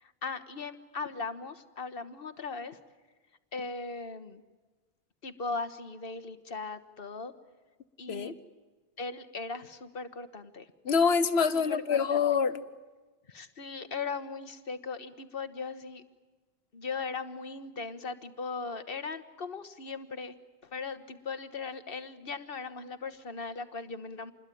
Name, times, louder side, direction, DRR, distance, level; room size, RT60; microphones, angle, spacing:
voice 1, 0.0-2.8 3.5-4.4 5.2-7.3 8.0-8.4 9.0-10.7 11.5-12.2 13.3-16.0 16.7-20.3 20.7-24.3, left 4 dB, 65° left, 10 dB, 1.5 m, -38 dB
voice 2, 10.8-12.6, left 6 dB, 85° left, 12 dB, 1.4 m, -26 dB
27.5 x 21.5 x 9.2 m, 1.3 s
omnidirectional pair, 1.0 m